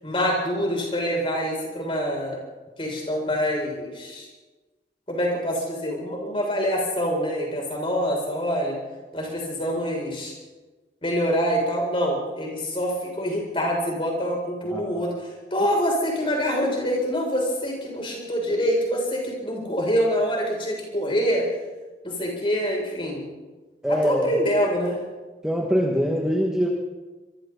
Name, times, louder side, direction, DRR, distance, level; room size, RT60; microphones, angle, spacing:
voice 1, 0.0-2.4 2.8-4.3 5.1-8.8 9.1-10.3 11.0-21.4 22.0-23.2 23.9-25.0, equal, 30° left, -2 dB, 7.6 m, -25 dB
voice 2, 14.7-15.1 23.8-24.3 25.4-26.7, equal, 5° right, -2 dB, 2.3 m, -23 dB
27.0 x 23.5 x 4.3 m, 1.2 s
head